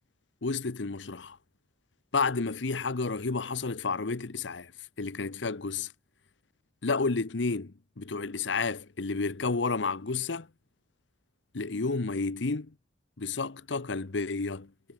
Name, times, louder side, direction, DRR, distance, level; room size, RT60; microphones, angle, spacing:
voice 1, 0.4-1.4 2.1-4.7 5.0-5.9 6.8-10.5 11.5-12.7 13.2-14.7, left 4 dB, 80° left, 0.9 m, -31 dB
head